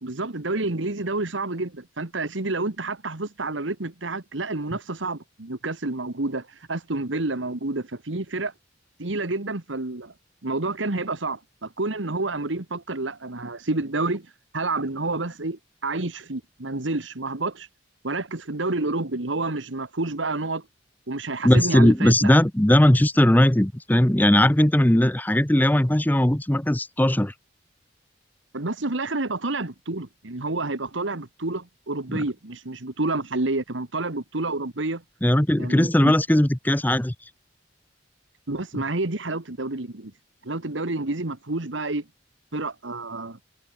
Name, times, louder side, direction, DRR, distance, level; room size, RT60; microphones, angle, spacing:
voice 1, 0.0-8.5 9.0-10.1 10.4-14.3 14.5-17.7 18.0-20.6 21.1-22.3 28.5-35.0 35.5-36.2 38.5-40.1 40.4-42.1 42.5-43.4, right 2 dB, 80° right, 1.7 m, -29 dB
voice 2, 21.4-27.3 32.1-32.2 35.2-37.1 38.7-38.8, left 1 dB, 10° left, 0.7 m, -19 dB
head